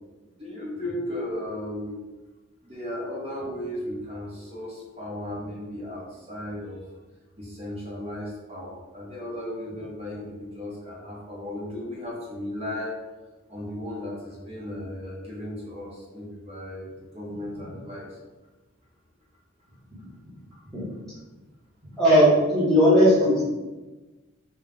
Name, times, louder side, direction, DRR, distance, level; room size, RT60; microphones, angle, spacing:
voice 1, 0.4-2.0 2.6-6.8 7.4-13.0 13.5-18.1 20.5-20.6, left 1 dB, 30° right, -4 dB, 0.8 m, -35 dB
voice 2, 22.0-23.4, equal, ahead, -10 dB, 1.0 m, -17 dB
2.3 x 2.1 x 3.6 m, 1.2 s
head